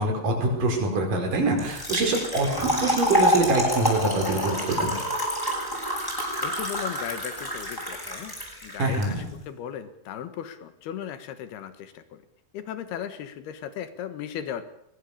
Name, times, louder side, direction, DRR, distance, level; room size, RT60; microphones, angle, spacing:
voice 1, 0.0-5.0 8.8-9.2, right 2 dB, 55° right, 3 dB, 6.4 m, -25 dB
Trickle dribble / Fill (with liquid), 1.6-9.1, equal, 5° left, 6.9 m, -27 dB
voice 2, 6.4-12.2 12.5-14.6, left 9 dB, 85° left, 11 dB, 3.5 m, -37 dB
22.5 x 21.5 x 6.8 m, 0.76 s
omnidirectional pair, 4.5 m